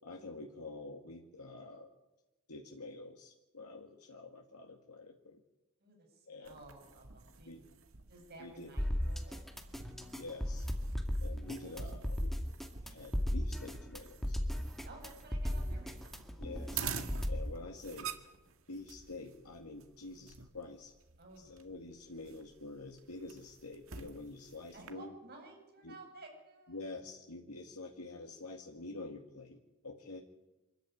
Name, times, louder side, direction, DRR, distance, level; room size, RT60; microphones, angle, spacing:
voice 1, 0.0-1.9 2.5-5.4 6.3-6.5 7.5-7.6 8.4-8.7 10.2-10.7 11.2-12.3 12.8-14.4 16.4-16.9 17.3-18.1 18.7-20.9 21.4-25.1 25.8-26.0 26.7-30.2, left 2 dB, 90° left, 2 dB, 1.9 m, -47 dB
voice 2, 5.8-7.5 8.1-9.4 14.8-16.2 21.2-21.5 24.7-26.9 30.1-30.2, right 2 dB, 45° right, 1 dB, 7.9 m, -54 dB
sound 1, 6.4-24.9, right 6 dB, 65° right, 1.9 m, -48 dB
sound 2, 8.8-17.5, equal, ahead, 2.1 m, -36 dB
25.0 x 14.0 x 9.7 m, 1.0 s
head